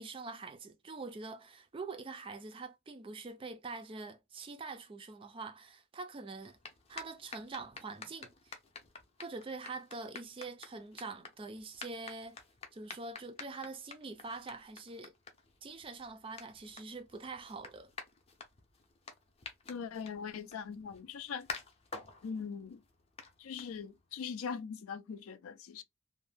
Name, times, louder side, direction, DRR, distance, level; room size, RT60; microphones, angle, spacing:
voice 1, 0.0-6.6 6.9-8.5 9.2-12.4 12.7-15.1 15.6-17.9, right 3 dB, 25° right, 0.3 m, -44 dB
sound 1, 6.4-24.1, left 4 dB, 30° left, 0.5 m, -51 dB
voice 2, 19.7-21.5 22.2-22.8 23.4-25.8, left 6 dB, 80° left, 0.4 m, -41 dB
2.6 x 2.1 x 3.2 m
head